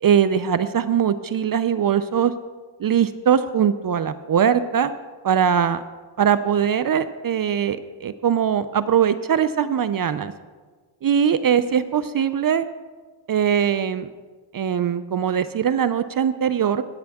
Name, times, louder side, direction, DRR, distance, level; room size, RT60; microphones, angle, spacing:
voice 1, 0.0-2.3 2.8-4.9 5.2-5.8 6.2-10.3 11.0-12.6 13.3-14.1 14.5-16.8, right 8 dB, 45° right, 12 dB, 0.5 m, -21 dB
19.5 x 8.7 x 3.5 m, 1.4 s
cardioid pair, 95°, 47 cm